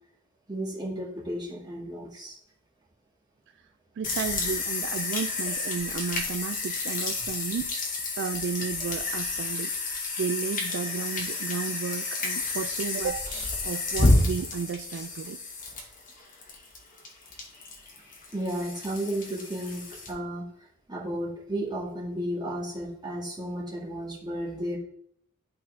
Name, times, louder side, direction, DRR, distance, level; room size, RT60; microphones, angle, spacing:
voice 1, 0.5-2.4 18.3-20.5 20.9-24.8, right 1 dB, 20° right, -5 dB, 2.0 m, -33 dB
sound 1, 4.0-20.1, left 2 dB, 40° left, 1.5 m, -30 dB
voice 2, 4.0-7.7 8.2-15.4, right 6 dB, 60° right, 9 dB, 0.3 m, -33 dB
11.5 x 3.9 x 3.3 m, 0.70 s
head